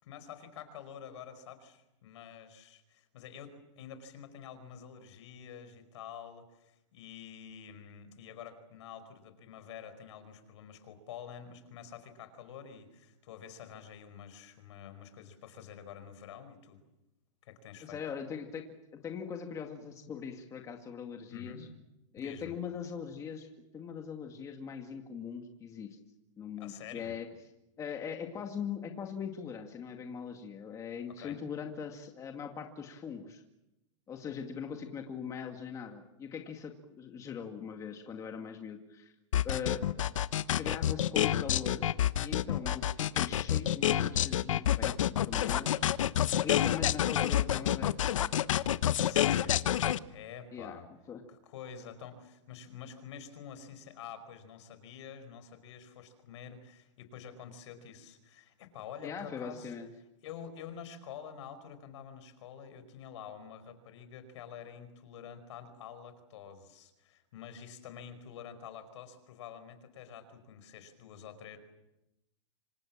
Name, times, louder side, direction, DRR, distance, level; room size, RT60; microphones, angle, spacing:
voice 1, 0.0-16.8 17.4-18.0 21.3-21.7 22.2-22.5 26.6-27.1 31.2-31.4 48.9-49.6 50.1-50.9 51.3-59.7 60.2-71.6, left 8 dB, 65° left, 11 dB, 5.1 m, -48 dB
voice 2, 17.8-18.6 18.9-21.7 22.1-26.0 26.4-27.3 27.8-33.4 34.1-39.1 39.4-39.8 40.6-41.9 42.2-45.8 46.4-48.0 50.5-50.8 51.1-51.2 59.0-59.9, left 7 dB, 20° left, 4 dB, 2.2 m, -41 dB
sound 1, 39.3-50.0, left 11 dB, 80° left, 1.1 m, -28 dB
27.0 x 26.0 x 7.5 m, 0.94 s
hypercardioid pair, 145°, 16 cm